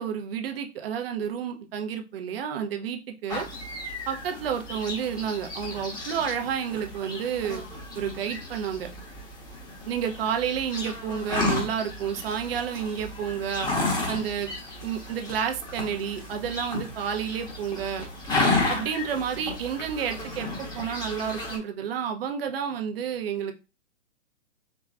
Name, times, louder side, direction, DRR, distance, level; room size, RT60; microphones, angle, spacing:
voice 1, 0.0-3.4 4.1-7.6 7.9-8.9 9.9-13.7 14.1-14.5 14.8-18.0 18.7-23.5, right 8 dB, 50° right, 5 dB, 0.9 m, -30 dB
sound 1, 3.3-21.6, left 2 dB, 10° left, 1.3 m, -33 dB
4.7 x 3.0 x 2.5 m, 0.30 s
figure-of-eight pair, 120°, 37 cm